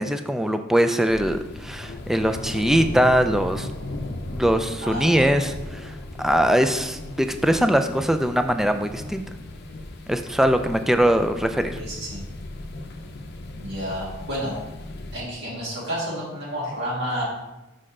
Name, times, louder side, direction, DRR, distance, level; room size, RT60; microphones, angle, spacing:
voice 1, 0.0-3.7 4.3-9.2 10.1-11.8, equal, ahead, 8 dB, 0.3 m, -22 dB
sound 1, 1.1-15.2, left 2 dB, 55° left, 0.6 m, -37 dB
voice 2, 4.8-5.3 11.8-12.2 13.6-14.5 15.1-17.2, equal, 60° right, -6 dB, 2.0 m, -30 dB
6.6 x 5.2 x 3.7 m, 1.0 s
head